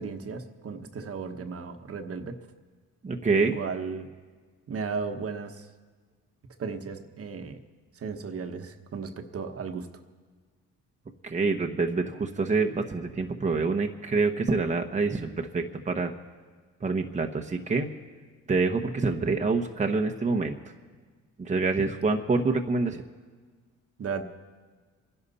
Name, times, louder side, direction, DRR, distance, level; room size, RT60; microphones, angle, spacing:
voice 1, 0.0-2.3 3.5-4.1 4.7-5.7 6.6-7.6 7.9-9.9 24.0-24.2, right 5 dB, 50° right, 6 dB, 1.2 m, -35 dB
voice 2, 3.0-3.6 11.2-16.1 16.8-17.9 18.5-20.6 21.4-23.0, right 4 dB, 25° right, 3 dB, 1.0 m, -26 dB
25.5 x 11.0 x 4.2 m, 1.5 s
cardioid pair, 90°, 30 cm